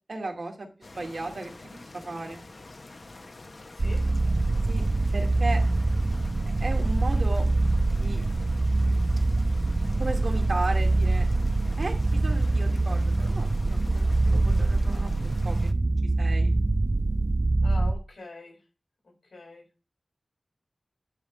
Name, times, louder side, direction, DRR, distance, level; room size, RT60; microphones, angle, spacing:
voice 1, 0.1-2.4 4.7-4.9 5.1-5.6 6.6-7.5 8.0-8.2 10.0-11.3 11.8-15.1 15.4-15.6 16.2-16.5, right 2 dB, 65° right, 2 dB, 2.5 m, -35 dB
sound 1, 0.8-15.7, left 2 dB, 55° left, 1.0 m, -47 dB
voice 2, 3.6-4.1 17.6-18.6 19.0-19.7, left 2 dB, 90° left, -1 dB, 5.2 m, -44 dB
sound 2, 3.8-17.9, right 2 dB, 45° right, 0.4 m, -24 dB
10.5 x 3.6 x 7.1 m, 0.33 s
wide cardioid pair, 75°, 0 cm